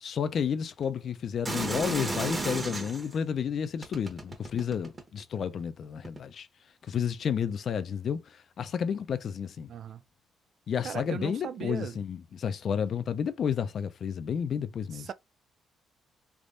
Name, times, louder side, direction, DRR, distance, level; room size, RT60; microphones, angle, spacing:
voice 1, 0.0-6.5 6.9-8.2 8.6-9.7 10.7-15.1, left 7 dB, 55° left, 0.5 m, -31 dB
sound 1, 1.4-3.1 3.8-5.2 6.0-6.2, right 2 dB, 25° right, 1.1 m, -33 dB
voice 2, 9.7-10.0 10.8-12.0 14.9-15.1, right 8 dB, 60° right, 0.3 m, -37 dB
3.4 x 3.0 x 2.5 m
cardioid pair, 90°, 0 cm